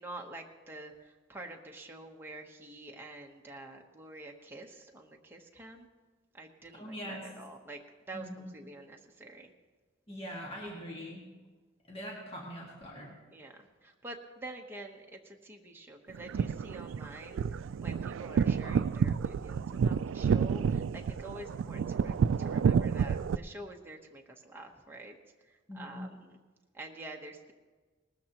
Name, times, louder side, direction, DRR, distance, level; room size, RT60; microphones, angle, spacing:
voice 1, 0.0-5.9 6.3-7.8 8.1-8.3 8.5-9.5 13.3-13.5 13.8-17.4 17.8-25.1 25.7-26.4 26.7-27.5, right 2 dB, 10° right, 0 dB, 1.0 m, -47 dB
voice 2, 6.7-7.2 8.1-8.5 10.1-11.2 11.9-13.1 25.7-26.1, equal, 30° left, -3 dB, 1.9 m, -42 dB
sound 1, 16.1-23.4, right 6 dB, 70° right, 0.3 m, -29 dB
19.5 x 13.5 x 3.0 m, 1.3 s
head